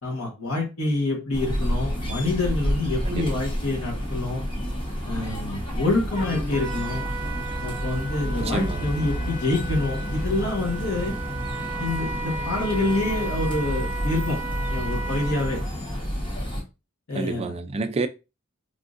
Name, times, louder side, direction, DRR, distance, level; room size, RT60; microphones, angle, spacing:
voice 1, 0.0-4.4 5.0-7.0 7.6-11.2 11.8-14.4 14.7-15.6 17.1-17.5, left 2 dB, 85° left, 1.2 m, -27 dB
sound 1, 1.3-16.6, equal, 25° left, 0.9 m, -30 dB
voice 2, 3.0-3.4 8.4-8.9 17.1-18.1, right 3 dB, 30° right, 0.3 m, -29 dB
Trumpet, 6.1-15.7, right 3 dB, 40° left, 1.4 m, -35 dB
3.5 x 2.5 x 2.5 m
head